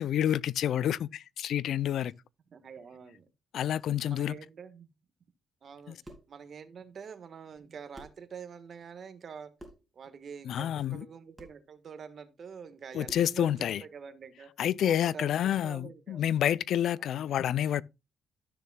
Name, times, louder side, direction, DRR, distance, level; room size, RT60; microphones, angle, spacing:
voice 1, 0.0-2.1 3.5-4.4 5.9-6.0 10.4-11.1 12.9-13.8 14.6-17.8, left 10 dB, 70° left, 0.4 m, -29 dB
voice 2, 2.5-3.2 4.1-4.9 5.6-9.5 9.9-14.5 14.8-15.3 15.6-16.2 17.0-17.4, right 6 dB, 50° right, 1.4 m, -46 dB
sound 1, 6.0-6.4 7.5-7.6 7.9-8.3 9.6-9.9 11.4-11.6 13.0-13.4, right 1 dB, 10° right, 2.5 m, -50 dB
13.0 x 6.7 x 2.3 m
cardioid pair, 90°, 0 cm